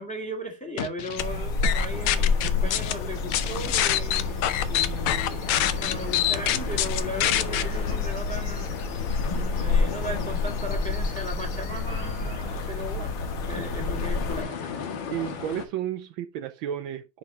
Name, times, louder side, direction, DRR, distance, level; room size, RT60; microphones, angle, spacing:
voice 1, 0.0-9.0 9.3-14.7, equal, 5° left, 1.8 m, -37 dB
sound 1, 0.8-1.2 1.6-2.9 3.3-7.6, left 12 dB, 85° left, 1.6 m, -25 dB
sound 2, 1.2-14.4, left 3 dB, 50° left, 1.4 m, -29 dB
sound 3, 1.9-15.7, left 6 dB, 65° left, 1.8 m, -36 dB
voice 2, 15.1-17.2, right 11 dB, 75° right, 1.3 m, -32 dB
10.0 x 4.4 x 3.0 m
omnidirectional pair, 2.3 m